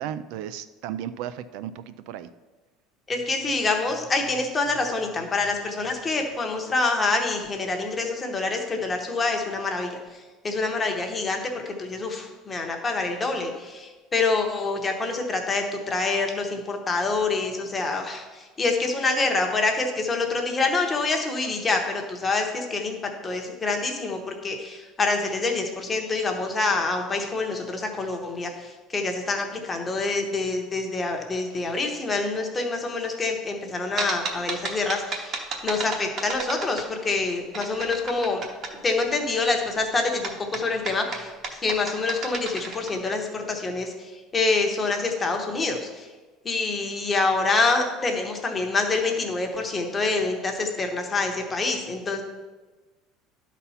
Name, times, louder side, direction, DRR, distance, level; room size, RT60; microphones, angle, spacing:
voice 1, 0.0-2.3, right 10 dB, 60° right, 13 dB, 0.3 m, -34 dB
voice 2, 3.1-23.0 23.2-38.5 38.8-46.1 46.4-52.2, left 3 dB, 15° left, 3 dB, 0.9 m, -26 dB
sound 1, 34.0-37.2 37.5-38.7 40.2-42.9, right 4 dB, 35° right, 0.9 m, -32 dB
11.5 x 4.1 x 5.6 m, 1.3 s
cardioid pair, 175°, 0 cm